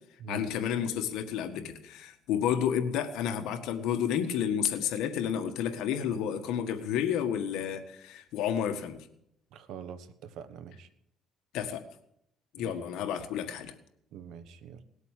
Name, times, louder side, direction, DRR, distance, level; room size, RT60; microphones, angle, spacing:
voice 1, 0.3-9.1 11.5-11.8 12.5-13.7, left 9 dB, 85° left, 7 dB, 1.6 m, -31 dB
voice 2, 9.5-10.9 12.6-12.7 14.1-14.8, right 8 dB, 80° right, 12 dB, 1.3 m, -44 dB
19.0 x 8.2 x 8.3 m, 0.77 s
cardioid pair, 135°, 0 cm